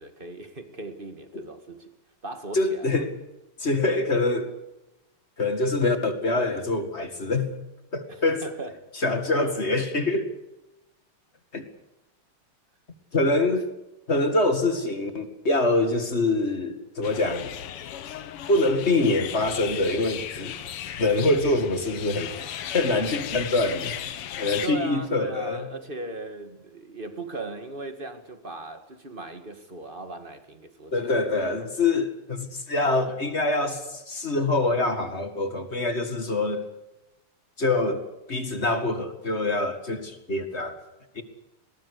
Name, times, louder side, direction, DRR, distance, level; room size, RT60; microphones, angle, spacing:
voice 1, 0.0-1.9 2.2-3.0 8.1-8.9 24.6-31.2 31.6-31.7, right 2 dB, 25° right, 1.9 m, -38 dB
voice 2, 2.5-3.1 3.6-4.5 5.4-7.5 7.9-8.4 8.9-10.3 11.5-11.6 13.1-13.7 14.1-17.5 18.5-20.5 21.0-24.0 24.4-25.7 30.9-36.7 37.6-40.8 41.2-41.3, left 2 dB, 30° left, 2.2 m, -25 dB
sound 1, 17.0-24.7, left 10 dB, 90° left, 2.0 m, -36 dB
21.0 x 18.5 x 8.3 m
omnidirectional pair, 2.4 m